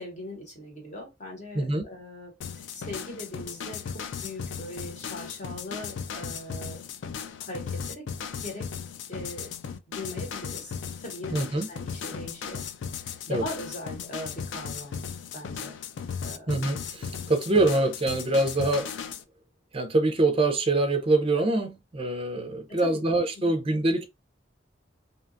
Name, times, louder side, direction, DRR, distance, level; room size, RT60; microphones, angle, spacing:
voice 1, 0.0-6.8 7.4-8.1 8.4-8.7 9.1-9.5 9.9-12.6 13.3-15.0 15.3-15.8 16.2-16.5 22.7-23.0 23.4-23.5, left 1 dB, 40° left, 1.0 m, -40 dB
sound 1, 2.4-19.2, left 6 dB, 65° left, 0.3 m, -37 dB
voice 2, 11.3-11.7 13.3-13.4 16.5-18.9 19.7-24.0, right 2 dB, 30° right, 0.5 m, -25 dB
2.8 x 2.3 x 2.5 m
head